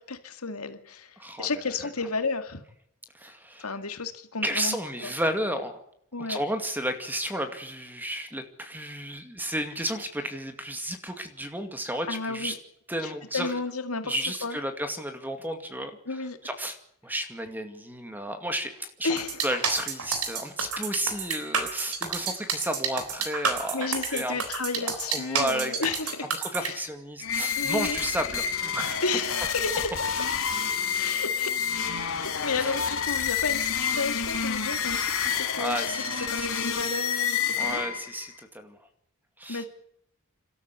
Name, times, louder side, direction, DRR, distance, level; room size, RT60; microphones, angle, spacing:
voice 1, 0.0-2.6 3.6-4.7 5.0-5.1 6.1-6.4 12.1-12.6 13.0-14.1 14.4-14.6 16.1-16.4 19.0-19.5 23.7-26.3 26.6-26.7 27.6-28.0 29.0-29.7 30.9-35.9 36.3-37.8 39.5-39.7, left 4 dB, 85° left, 8 dB, 2.2 m, -32 dB
voice 2, 1.2-1.5 3.1-3.6 4.4-5.8 6.2-12.5 12.9-13.5 14.0-15.9 16.4-16.8 17.0-24.4 24.8-25.7 26.2-29.0 32.0-32.1 32.6-32.7 34.9-35.1 35.6-36.7 37.6-38.8 39.4-39.7, right 1 dB, 10° right, 7 dB, 2.2 m, -32 dB
sound 1, 19.2-26.7, right 5 dB, 85° right, 3.9 m, -29 dB
sound 2, 27.2-38.3, left 7 dB, 65° left, 2.8 m, -29 dB
29.0 x 13.0 x 8.2 m, 0.73 s
head